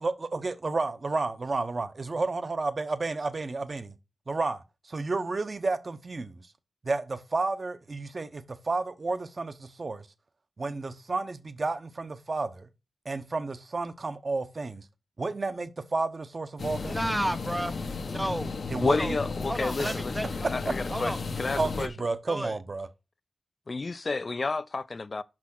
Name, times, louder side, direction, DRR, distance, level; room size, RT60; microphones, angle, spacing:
voice 1, 0.0-3.9 4.3-6.4 6.8-10.1 10.6-12.7 13.0-14.8 15.2-17.0 18.7-19.1 19.8-19.9 21.6-22.9, right 3 dB, 50° right, 0.9 m, -31 dB
sound 1, 16.6-21.9, left 4 dB, 75° left, 0.9 m, -34 dB
voice 2, 16.9-17.8 18.0-18.6 19.0-19.1 19.5-20.3 20.9-21.2 22.3-22.6, right 1 dB, 10° right, 0.5 m, -32 dB
voice 3, 18.8-20.1 20.5-21.1 21.4-21.9 23.7-25.2, left 3 dB, 50° left, 0.4 m, -30 dB
6.1 x 5.7 x 6.1 m
wide cardioid pair, 75°, 0 cm